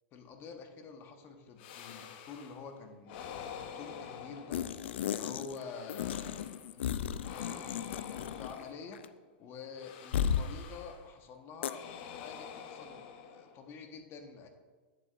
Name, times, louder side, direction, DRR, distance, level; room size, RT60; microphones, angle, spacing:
voice 1, 0.1-4.6 5.0-6.4 6.7-9.0 9.4-11.8 12.1-14.5, left 5 dB, 40° left, 5 dB, 1.2 m, -48 dB
sound 1, 1.6-2.7 3.1-5.1 5.5-6.7 7.2-9.2 9.7-11.2 11.6-13.8, left 7 dB, 60° left, 0.8 m, -48 dB
sound 2, 4.5-5.6 5.9-8.7 8.9-9.1 10.1-10.5 11.6-11.7, left 9 dB, 80° left, 0.4 m, -34 dB
9.3 x 7.7 x 2.5 m, 1.3 s
hypercardioid pair, 110°, 6 cm